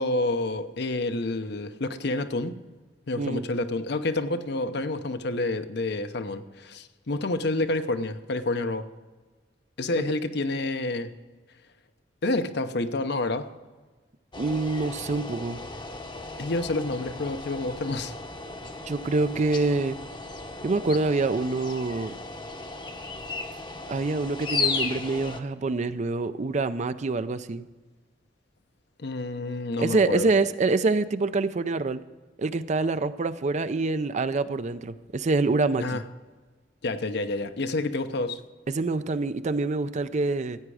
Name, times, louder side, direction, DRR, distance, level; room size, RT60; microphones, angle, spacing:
voice 1, 0.0-2.6 3.1-8.9 9.8-11.1 12.2-13.5 16.4-18.1 29.0-30.3 35.8-36.0 36.8-38.4, left 2 dB, 65° left, 9 dB, 0.8 m, -28 dB
sound 1, 14.3-25.4, left 4 dB, 25° left, 0.8 m, -35 dB
voice 2, 14.4-15.6 18.8-20.0 20.6-22.1 23.9-27.7 29.8-32.0 32.4-36.0 38.7-40.6, right 3 dB, 40° right, 13 dB, 0.5 m, -26 dB
15.0 x 8.8 x 4.8 m, 1.3 s
head